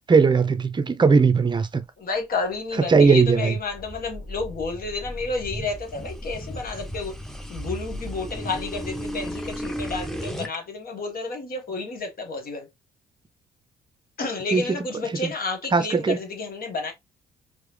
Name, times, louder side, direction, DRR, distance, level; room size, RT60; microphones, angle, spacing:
voice 1, 0.1-1.8 2.9-3.6 14.5-14.8 15.1-15.3 15.7-16.2, right 5 dB, 25° right, 0.6 m, -19 dB
voice 2, 2.0-7.2 7.5-12.7 14.2-16.9, left 3 dB, 55° left, 1.3 m, -31 dB
sound 1, 2.5-10.6, equal, ahead, 0.8 m, -35 dB
4.7 x 2.0 x 3.1 m
hypercardioid pair, 50°, 18 cm